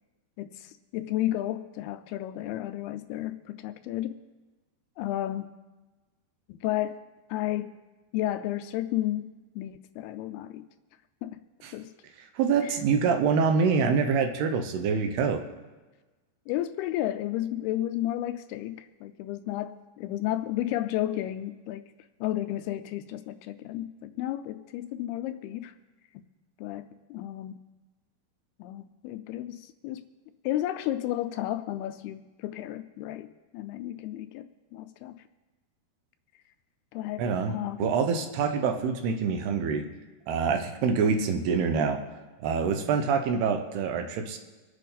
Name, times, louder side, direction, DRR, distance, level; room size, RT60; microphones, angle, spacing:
voice 1, 0.4-4.2 5.0-5.5 6.5-7.7 8.1-10.7 11.2-11.3 11.7-11.9 12.6-12.7 16.5-21.9 22.2-25.7 26.6-27.6 28.6-30.1 30.4-35.2 36.9-37.9, left 13 dB, 80° left, 10 dB, 2.4 m, -32 dB
voice 2, 12.4-15.4 37.2-39.8 40.3-42.0 42.4-44.4, right 5 dB, 80° right, 5 dB, 3.0 m, -26 dB
25.0 x 8.3 x 4.1 m, 1.2 s
omnidirectional pair, 4.7 m